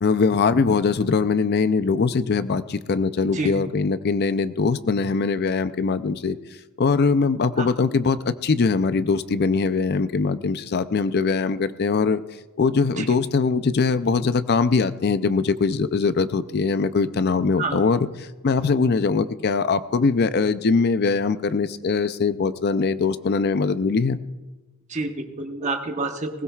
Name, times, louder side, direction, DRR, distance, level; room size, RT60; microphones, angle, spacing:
voice 1, 0.0-6.4 6.8-12.2 12.6-24.2, left 4 dB, 45° left, 13 dB, 0.5 m, -22 dB
voice 2, 24.9-26.4, right 3 dB, 30° right, 4 dB, 1.0 m, -28 dB
20.0 x 16.0 x 2.4 m, 1.2 s
head